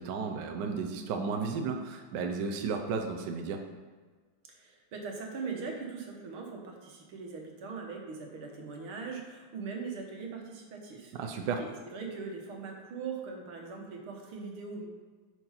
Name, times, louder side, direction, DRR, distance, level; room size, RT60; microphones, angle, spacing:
voice 1, 0.0-3.6 11.1-11.6, right 5 dB, 65° right, 3 dB, 1.3 m, -33 dB
voice 2, 4.5-14.9, right 4 dB, 85° right, 1 dB, 2.2 m, -41 dB
9.8 x 4.6 x 5.7 m, 1.5 s
omnidirectional pair, 2.3 m